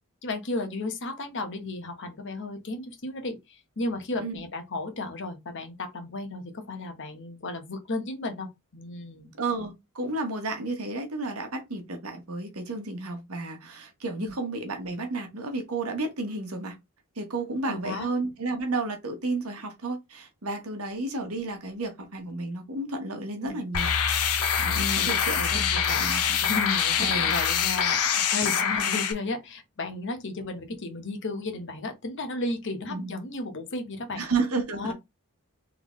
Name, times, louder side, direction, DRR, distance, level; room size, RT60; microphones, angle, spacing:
voice 1, 0.2-9.3 14.2-14.3 17.6-18.1 23.4-23.6 24.6-26.1 26.4-34.2 34.7-34.9, left 2 dB, 55° left, 1.0 m, -34 dB
voice 2, 9.4-16.7 17.2-23.9 24.6-25.7 26.0-26.4 27.0-27.3 32.9-33.1 34.2-34.9, right 3 dB, 70° right, 1.2 m, -32 dB
sound 1, 23.7-29.1, left 7 dB, 80° left, 0.9 m, -25 dB
3.8 x 3.4 x 3.1 m
head